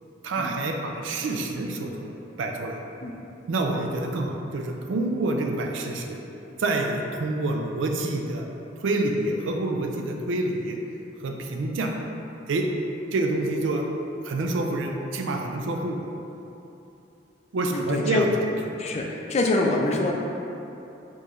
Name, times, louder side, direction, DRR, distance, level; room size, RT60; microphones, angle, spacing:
voice 1, 0.2-2.1 2.4-2.8 3.5-6.2 6.6-8.5 8.8-10.8 11.2-11.9 12.5-12.6 13.1-13.8 14.2-16.0 17.5-18.3, right 2 dB, 80° right, 2 dB, 0.4 m, -27 dB
voice 2, 17.7-18.3 18.8-20.1, left 2 dB, 35° left, 1 dB, 0.3 m, -25 dB
4.6 x 3.0 x 2.5 m, 2.9 s
head